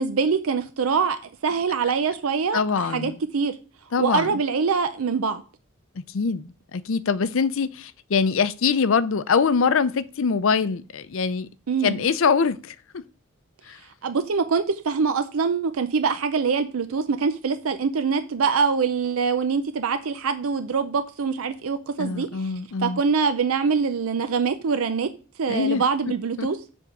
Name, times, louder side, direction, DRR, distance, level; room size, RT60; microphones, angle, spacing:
voice 1, 0.0-3.6 4.0-5.4 11.7-12.0 14.0-22.5 22.8-25.1 25.4-26.6, right 5 dB, 85° right, 0.5 m, -24 dB
voice 2, 2.5-3.2 3.9-4.4 6.0-11.5 11.8-12.7 13.7-13.8 22.0-23.0 25.5-25.8 26.4-26.5, left 5 dB, 70° left, 0.5 m, -23 dB
7.6 x 3.6 x 6.5 m
head